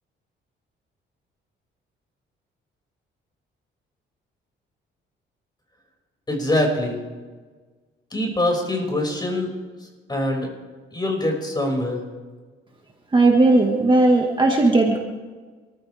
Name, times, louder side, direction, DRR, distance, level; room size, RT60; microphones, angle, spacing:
voice 1, 6.3-7.0 8.1-9.5 10.1-10.5 10.9-12.0, left 1 dB, 20° left, 0 dB, 6.3 m, -23 dB
voice 2, 13.1-15.0, right 2 dB, 25° right, 1 dB, 1.8 m, -16 dB
26.5 x 14.5 x 3.6 m, 1.4 s
cardioid pair, 90°, 20 cm